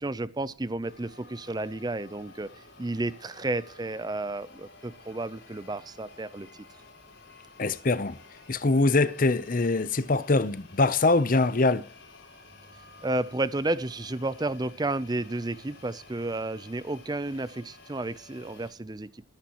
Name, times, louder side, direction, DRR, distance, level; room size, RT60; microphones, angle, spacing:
voice 1, 0.0-2.5 2.8-6.5 13.0-19.2, right 2 dB, 20° right, 0.6 m, -32 dB
sound 1, 0.8-18.7, left 3 dB, 70° left, 5.0 m, -52 dB
voice 2, 7.6-8.2 8.5-11.8, left 3 dB, 45° left, 0.7 m, -23 dB
21.0 x 10.5 x 3.0 m
head